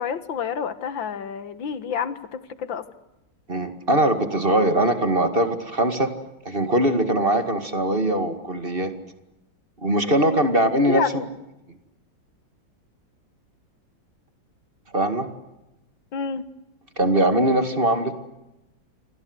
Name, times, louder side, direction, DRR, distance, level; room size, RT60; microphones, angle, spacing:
voice 1, 0.0-2.9 10.5-10.6 10.9-11.2 16.1-16.4, left 7 dB, 80° left, 13 dB, 2.1 m, -29 dB
voice 2, 3.5-6.1 6.4-8.9 9.8-11.2 14.9-15.3 17.0-18.1, right 1 dB, 30° right, 8 dB, 2.2 m, -21 dB
28.5 x 23.5 x 8.0 m, 0.96 s
omnidirectional pair, 2.1 m